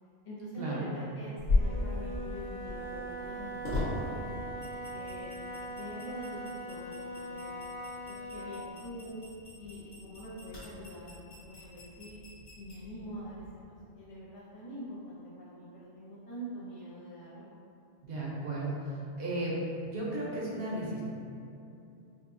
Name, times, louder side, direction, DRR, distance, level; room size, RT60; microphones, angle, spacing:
voice 1, 0.2-4.3 4.9-5.3 5.7-7.6 8.1-9.2 9.6-11.2 11.5-12.2 12.6-13.4 14.0-17.5, equal, 45° left, -9 dB, 0.4 m, -44 dB
sound 1, 1.4-13.6, left 2 dB, 90° left, 1.6 m, -38 dB
Wind instrument woodwind instrument, 1.5-8.7, right 1 dB, 35° right, 0.5 m, -41 dB
voice 2, 18.0-18.9 19.2-19.5 19.8-21.0, right 2 dB, 60° right, -5 dB, 1.0 m, -34 dB
5.2 x 2.2 x 2.6 m, 2.8 s
omnidirectional pair, 1.2 m